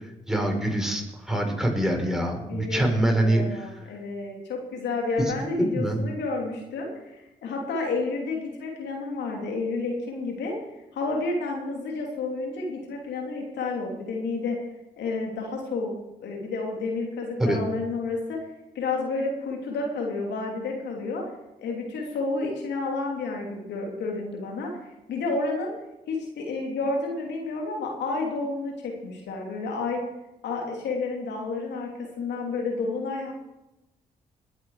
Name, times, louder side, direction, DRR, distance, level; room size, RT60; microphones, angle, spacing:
voice 1, 0.3-3.4 5.6-6.0 17.4-17.6, right 1 dB, 5° right, 2 dB, 5.1 m, -24 dB
voice 2, 2.4-10.6 10.9-14.6 15.0-15.9 16.2-18.4 18.7-21.2 21.6-25.7 26.1-30.0 30.4-33.3, left 3 dB, 75° left, 0 dB, 3.0 m, -30 dB
20.0 x 8.1 x 5.0 m, 0.96 s
hypercardioid pair, 45°, 18 cm